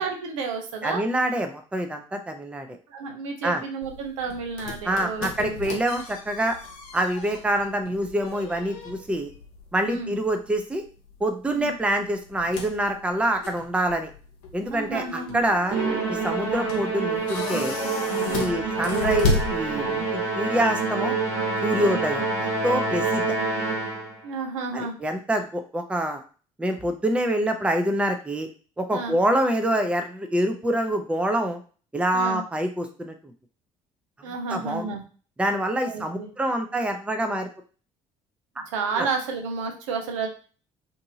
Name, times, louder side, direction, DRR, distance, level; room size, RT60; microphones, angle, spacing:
voice 1, 0.0-1.0 2.9-5.8 9.9-10.1 11.5-11.7 14.7-15.4 18.3-18.5 21.8-22.0 24.2-24.9 28.9-29.2 32.1-32.4 34.2-35.0 35.8-36.3 38.7-40.3, right 4 dB, 85° right, 3 dB, 0.6 m, -31 dB
voice 2, 0.8-2.8 3.4-3.6 4.8-6.6 6.9-9.3 9.7-10.8 11.2-14.1 14.5-15.8 16.1-17.8 18.3-21.1 21.6-23.4 24.7-26.2 26.6-28.5 28.8-31.6 31.9-33.1 34.5-34.9 35.4-37.5 39.0-39.1, right 1 dB, 5° right, 5 dB, 0.5 m, -26 dB
sound 1, 3.8-20.2, left 3 dB, 70° left, 0.7 m, -34 dB
Musical instrument, 15.7-24.2, right 3 dB, 55° right, 1.2 m, -27 dB
2.6 x 2.6 x 2.7 m, 0.39 s
hypercardioid pair, 55°, 16 cm